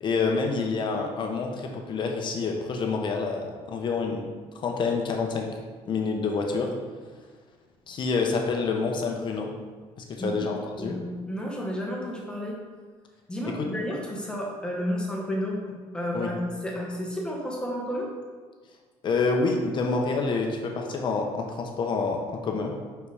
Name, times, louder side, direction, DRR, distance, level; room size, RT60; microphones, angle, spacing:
voice 1, 0.0-4.3 4.5-5.5 5.8-6.7 7.9-9.5 10.1-10.9 13.5-13.7 16.1-16.3 19.0-22.7, left 4 dB, 45° left, 2 dB, 0.9 m, -27 dB
voice 2, 10.8-12.6 13.3-18.1, equal, 10° left, -2 dB, 1.4 m, -31 dB
5.7 x 5.2 x 4.9 m, 1.5 s
cardioid pair, 145°, 11 cm